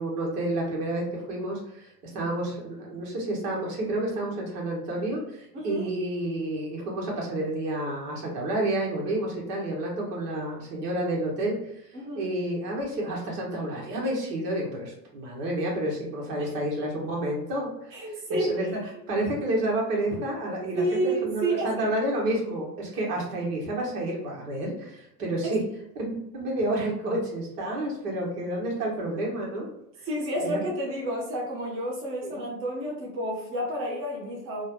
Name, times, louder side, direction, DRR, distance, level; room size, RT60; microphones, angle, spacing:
voice 1, 0.0-11.8 12.1-18.0 18.3-18.7 19.1-25.6 25.9-29.7 30.4-30.6 32.2-32.4, right 1 dB, 70° right, -2 dB, 1.5 m, -30 dB
voice 2, 5.5-5.9 11.9-12.3 16.4-16.5 17.9-18.7 20.8-21.9 25.4-25.6 30.0-34.6, right 1 dB, 25° right, -3 dB, 0.8 m, -30 dB
3.1 x 2.3 x 3.0 m, 0.81 s
hypercardioid pair, 100°, 49 cm